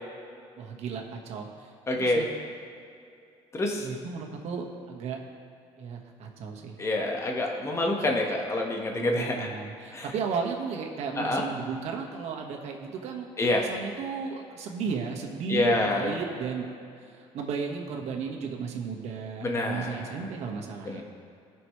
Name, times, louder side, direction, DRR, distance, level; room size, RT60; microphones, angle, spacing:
voice 1, 0.6-2.3 3.8-5.2 5.8-6.8 8.9-16.7 17.0-21.0, right 5 dB, 70° right, 1 dB, 1.5 m, -35 dB
voice 2, 1.9-2.2 3.5-3.9 6.8-9.5 9.9-10.1 11.2-11.4 13.4-13.6 15.5-16.1 19.4-20.1 20.8-21.0, left 2 dB, 25° left, 0 dB, 1.4 m, -27 dB
18.0 x 6.2 x 3.2 m, 2.5 s
cardioid pair, 110°, 11 cm